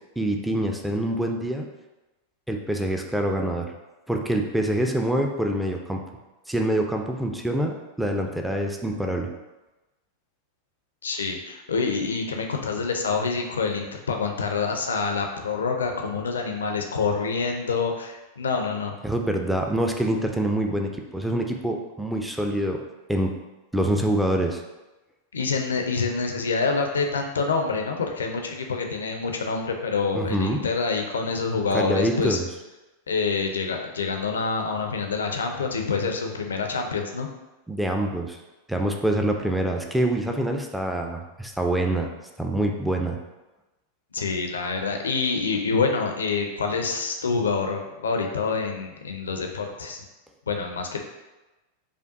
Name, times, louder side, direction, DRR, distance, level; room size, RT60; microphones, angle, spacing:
voice 1, 0.2-1.7 2.5-3.7 4.1-6.0 6.5-9.3 19.0-22.8 23.1-23.3 23.7-24.6 30.1-30.6 31.7-32.5 37.7-38.4 38.7-42.1 42.4-43.2, right 1 dB, 5° right, 2 dB, 0.4 m, -25 dB
voice 2, 11.0-19.0 25.3-32.4 33.1-37.3 44.1-50.0 50.5-51.0, left 4 dB, 70° left, 3 dB, 0.4 m, -26 dB
4.9 x 2.3 x 2.6 m, 1.1 s
figure-of-eight pair, 90°, 0 cm